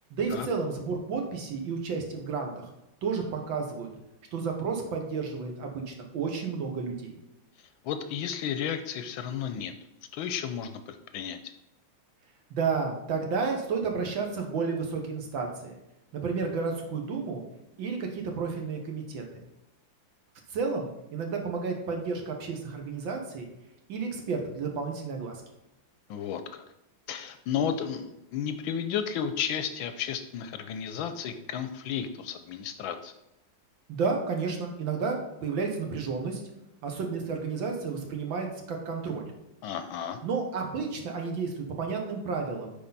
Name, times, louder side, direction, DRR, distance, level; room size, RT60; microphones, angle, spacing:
voice 1, 0.1-2.7 3.0-3.9 4.3-7.2 12.5-15.8 16.1-17.4 17.8-19.2 20.5-23.5 23.9-25.4 33.9-36.4 36.8-39.2 40.2-42.7, right 5 dB, 65° right, 2 dB, 1.8 m, -31 dB
voice 2, 7.8-9.7 10.1-11.5 26.1-26.6 27.1-33.1 39.6-40.2, left 8 dB, 75° left, 9 dB, 1.3 m, -33 dB
8.7 x 4.7 x 4.0 m, 0.90 s
omnidirectional pair, 2.4 m